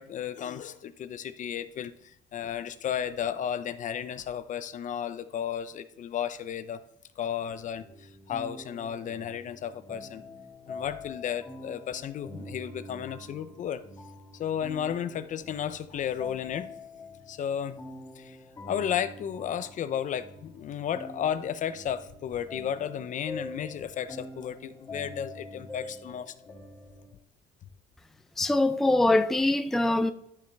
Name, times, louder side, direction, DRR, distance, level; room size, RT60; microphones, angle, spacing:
voice 1, 0.0-6.8 7.2-10.2 10.7-13.8 14.3-16.7 17.3-17.8 18.2-18.4 18.7-26.3, left 9 dB, 50° left, 0.6 m, -33 dB
sound 1, 7.8-27.1, left 2 dB, 20° left, 3.1 m, -45 dB
voice 2, 28.4-30.1, left 2 dB, ahead, 0.4 m, -23 dB
11.5 x 5.3 x 3.4 m
cardioid pair, 110°, 17 cm